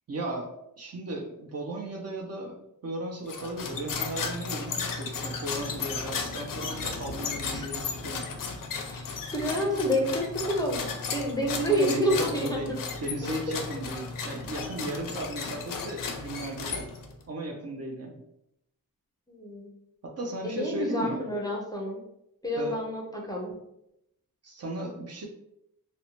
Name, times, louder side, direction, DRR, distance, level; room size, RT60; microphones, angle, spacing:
voice 1, 0.1-0.5 0.8-8.2 11.7-12.7 13.0-16.9 17.3-18.2 20.0-21.2 22.5-22.8 24.4-25.3, right 2 dB, 45° right, 1 dB, 0.5 m, -36 dB
sound 1, 3.3-17.2, left 5 dB, 65° left, 0.5 m, -35 dB
voice 2, 8.9-10.8 11.1-12.8 13.2-13.3 19.3-19.7 20.4-22.0 22.4-23.6, equal, 10° left, -2 dB, 0.5 m, -29 dB
2.7 x 2.1 x 2.8 m, 0.82 s
wide cardioid pair, 110°, 36 cm